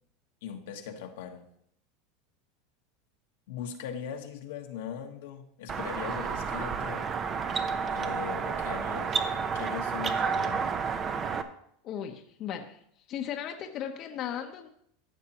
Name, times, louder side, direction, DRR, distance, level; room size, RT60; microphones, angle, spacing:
voice 1, 0.4-1.5 3.5-7.1 7.9-9.2 9.5-10.7, left 8 dB, 80° left, 3 dB, 1.3 m, -40 dB
sound 1, 5.7-11.4, right 6 dB, 30° right, 0.7 m, -31 dB
voice 2, 11.8-12.8 13.1-14.7, left 9 dB, 45° left, 4 dB, 0.9 m, -36 dB
14.0 x 6.6 x 3.0 m, 0.70 s
supercardioid pair, 120°, 0 cm